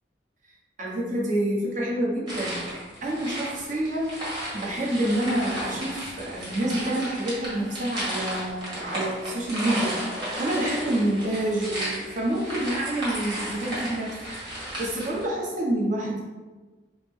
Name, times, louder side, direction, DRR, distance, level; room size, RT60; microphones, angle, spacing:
voice 1, 0.8-2.6 3.0-14.1 14.4-16.2, right 1 dB, 45° right, -4 dB, 0.9 m, -28 dB
sound 1, 2.3-15.2, right 1 dB, 25° right, 1.5 m, -34 dB
4.9 x 2.0 x 3.5 m, 1.3 s
head